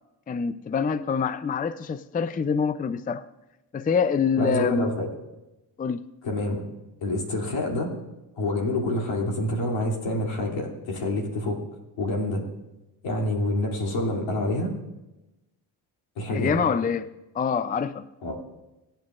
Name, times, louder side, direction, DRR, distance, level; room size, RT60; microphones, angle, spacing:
voice 1, 0.3-3.3 3.7-4.9 5.8-6.0 16.3-18.1, left 6 dB, 20° left, 0.5 m, -26 dB
voice 2, 4.4-5.1 6.2-6.6 7.0-7.9 8.4-11.6 12.0-12.4 13.0-14.7 16.2-16.6 18.2-18.4, left 1 dB, 80° left, 3.0 m, -27 dB
24.5 x 8.9 x 2.5 m
supercardioid pair, 55°, 48 cm